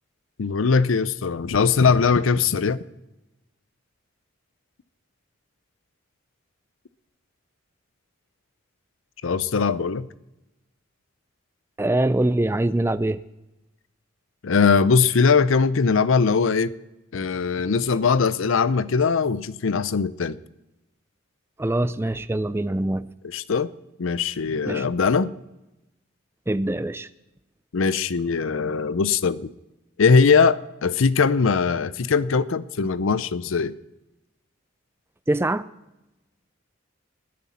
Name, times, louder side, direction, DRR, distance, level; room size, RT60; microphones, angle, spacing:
voice 1, 0.4-2.8 9.2-10.1 14.4-16.7 17.1-20.4 23.3-23.7 24.0-25.3 27.7-29.5 30.0-33.7, left 5 dB, 75° left, 0.5 m, -21 dB
voice 2, 11.8-13.2 21.6-23.1 24.7-24.9 26.5-27.1 35.3-35.7, right 1 dB, 10° right, 0.3 m, -23 dB
20.0 x 9.6 x 4.2 m
head